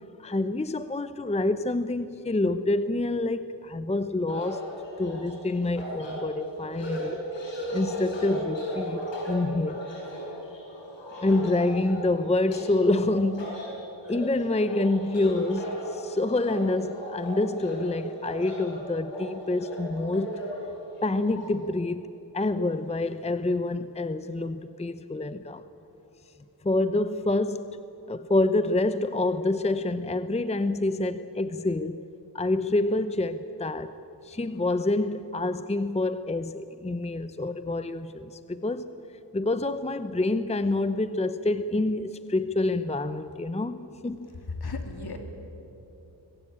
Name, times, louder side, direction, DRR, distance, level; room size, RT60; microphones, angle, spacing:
voice 1, 0.2-4.6 5.0-7.2 7.7-9.8 11.2-13.6 14.1-20.4 21.0-22.1 22.3-25.6 26.6-27.8 28.1-32.0 32.3-34.0 34.2-38.9 39.3-44.3, left 2 dB, 15° left, 12 dB, 0.8 m, -27 dB
sound 1, 4.3-21.5, equal, 75° left, 8.0 m, -36 dB
voice 2, 44.6-45.2, left 3 dB, 60° left, 4 dB, 3.3 m, -34 dB
25.0 x 21.0 x 8.8 m, 3.0 s
cardioid pair, 75°, 44 cm